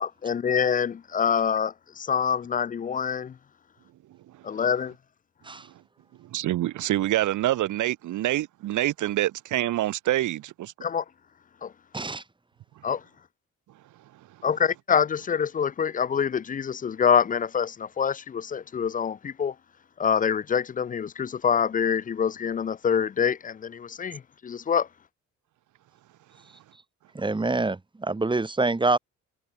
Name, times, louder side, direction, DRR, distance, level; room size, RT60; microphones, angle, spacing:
voice 1, 0.0-3.3 4.4-4.9 10.8-11.0 11.6-11.7 12.8-13.0 14.4-19.5 20.0-24.9, left 7 dB, 30° left, 0.4 m, -26 dB
voice 2, 6.2-10.7, right 14 dB, 80° right, 1.6 m, -26 dB
voice 3, 27.2-29.0, right 3 dB, 15° right, 1.6 m, -26 dB
cardioid pair, 90°, 30 cm